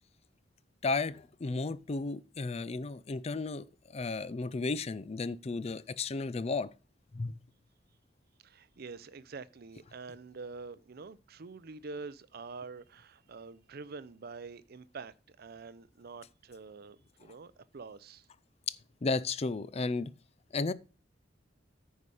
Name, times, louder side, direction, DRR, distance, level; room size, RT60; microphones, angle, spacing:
voice 1, 0.8-6.7 7.1-7.3 18.7-18.8 19.0-20.1 20.5-20.7, left 3 dB, 35° left, 0.4 m, -33 dB
voice 2, 8.4-18.3, right 4 dB, 55° right, 0.5 m, -46 dB
9.6 x 4.8 x 5.5 m
head